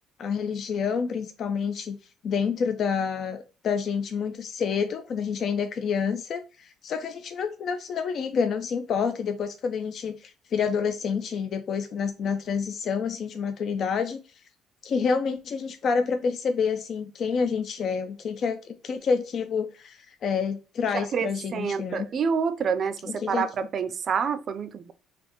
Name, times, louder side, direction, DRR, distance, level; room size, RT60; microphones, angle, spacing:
voice 1, 0.2-2.0 2.2-14.2 14.8-22.1 23.1-23.5, left 6 dB, 50° left, 0.4 m, -28 dB
voice 2, 20.9-24.9, right 6 dB, 45° right, 0.5 m, -28 dB
4.2 x 2.6 x 2.9 m
cardioid pair, 110°, 0 cm